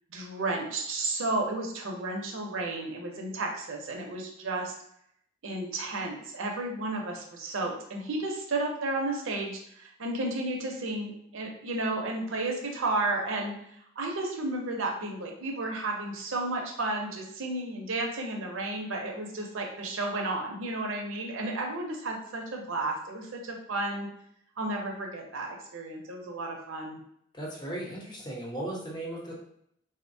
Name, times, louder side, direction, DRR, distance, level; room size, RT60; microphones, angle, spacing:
voice 1, 0.1-4.7 5.4-13.5 14.0-24.1 24.6-27.0, right 2 dB, 75° right, 1 dB, 0.7 m, -32 dB
voice 2, 27.3-29.3, right 1 dB, 20° left, -3 dB, 0.7 m, -36 dB
3.8 x 2.1 x 2.6 m, 0.72 s
head